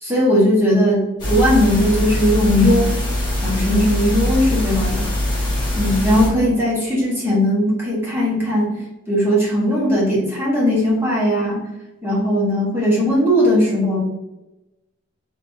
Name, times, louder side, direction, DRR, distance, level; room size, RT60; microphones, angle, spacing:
voice 1, 0.0-2.9 3.4-5.1 5.7-8.8 9.1-11.6 12.0-14.0, equal, 10° right, -7 dB, 1.4 m, -18 dB
sound 1, 1.2-6.3, left 1 dB, 20° left, 1.4 m, -22 dB
3.8 x 3.5 x 2.8 m, 1.0 s
head